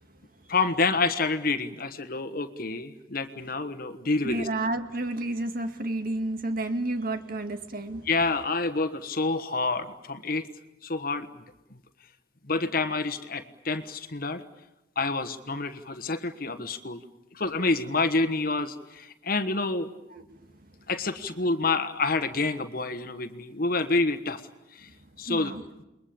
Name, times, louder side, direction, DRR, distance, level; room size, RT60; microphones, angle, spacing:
voice 1, 0.5-4.5 8.1-10.4 10.8-11.3 12.5-14.4 15.0-17.0 17.3-19.9 20.9-24.4 24.7-24.9 25.2-25.5, left 3 dB, 50° left, 10 dB, 1.4 m, -28 dB
voice 2, 4.2-8.1 20.1-20.2 25.3-25.6, right 2 dB, 50° right, 7 dB, 2.1 m, -31 dB
29.0 x 22.0 x 8.7 m, 0.95 s
head